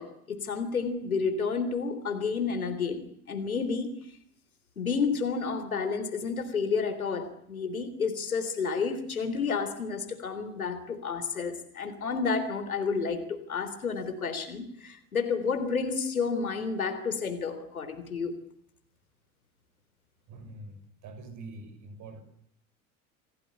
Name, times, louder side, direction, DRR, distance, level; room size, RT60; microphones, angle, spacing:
voice 1, 0.0-3.9 4.8-18.3, left 5 dB, 80° left, 3.7 m, -30 dB
voice 2, 20.3-22.2, right 2 dB, 45° right, 7.0 m, -45 dB
27.0 x 17.5 x 10.0 m
figure-of-eight pair, 75°, 42 cm